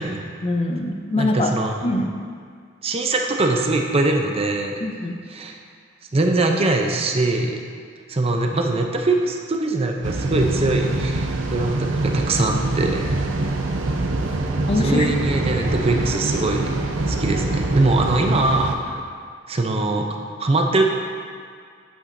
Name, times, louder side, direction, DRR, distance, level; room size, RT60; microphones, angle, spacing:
voice 1, 0.4-1.5 1.8-2.1 4.8-5.1 14.7-15.1, left 2 dB, 30° left, 3 dB, 0.5 m, -23 dB
voice 2, 1.2-1.9 2.8-4.8 5.3-5.6 6.1-7.6 8.1-13.1 14.8-16.7 17.1-19.0 19.5-20.9, right 2 dB, 30° right, 3 dB, 0.5 m, -22 dB
sound 1, 10.0-18.8, right 2 dB, 85° right, 0.6 m, -24 dB
8.6 x 8.1 x 2.6 m, 2.1 s
head